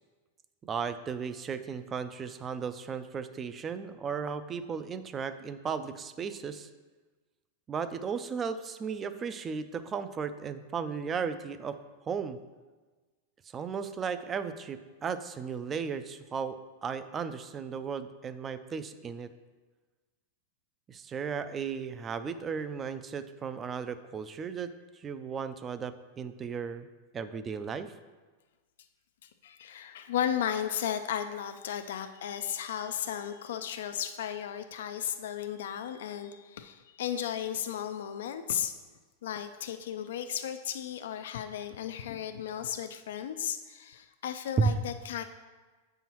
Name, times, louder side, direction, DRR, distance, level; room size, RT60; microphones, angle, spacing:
voice 1, 0.6-6.7 7.7-11.8 12.1-12.4 13.5-19.3 20.9-26.9 27.1-27.9 44.6-44.7, right 6 dB, 20° right, 12 dB, 0.3 m, -35 dB
voice 2, 29.2-38.7 39.2-45.2, left 9 dB, 80° left, 8 dB, 0.4 m, -35 dB
8.2 x 5.5 x 3.0 m, 1.3 s
supercardioid pair, 150°, 0 cm